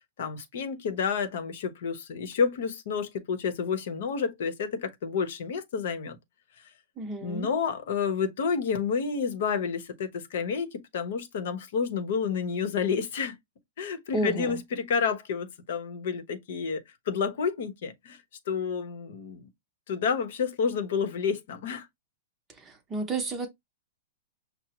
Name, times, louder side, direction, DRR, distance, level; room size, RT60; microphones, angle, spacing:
voice 1, 0.2-6.2 7.2-13.4 13.8-18.2 18.5-19.5 19.9-21.9, left 6 dB, 60° left, 0.8 m, -30 dB
voice 2, 7.0-7.5 14.1-14.6 22.6-23.5, right 2 dB, 15° right, 0.7 m, -31 dB
5.7 x 2.0 x 2.9 m
supercardioid pair, 170°, 0 cm